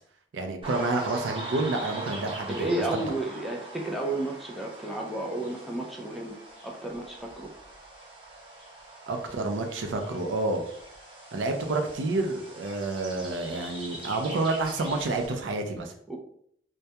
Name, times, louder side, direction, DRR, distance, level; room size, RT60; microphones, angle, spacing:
voice 1, 0.3-3.0 9.1-10.6 11.3-15.9, right 2 dB, 80° right, 5 dB, 0.4 m, -29 dB
sound 1, 0.6-15.3, right 2 dB, 30° right, 0.9 m, -42 dB
voice 2, 2.5-6.4 6.6-7.5 16.1-16.2, right 2 dB, ahead, 0 dB, 0.3 m, -32 dB
2.2 x 2.2 x 2.7 m, 0.67 s
head